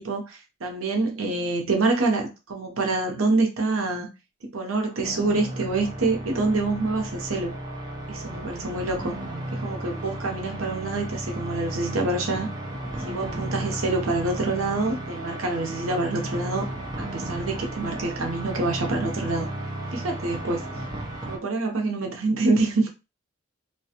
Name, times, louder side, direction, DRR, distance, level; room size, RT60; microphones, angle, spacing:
voice 1, 0.0-4.1 4.5-7.5 8.1-9.1 9.5-12.5 12.9-16.7 17.0-19.5 19.9-20.6 21.3-22.9, right 3 dB, 85° right, 0.7 m, -26 dB
sound 1, 4.9-21.4, right 1 dB, 20° right, 0.5 m, -34 dB
2.4 x 2.1 x 2.8 m
head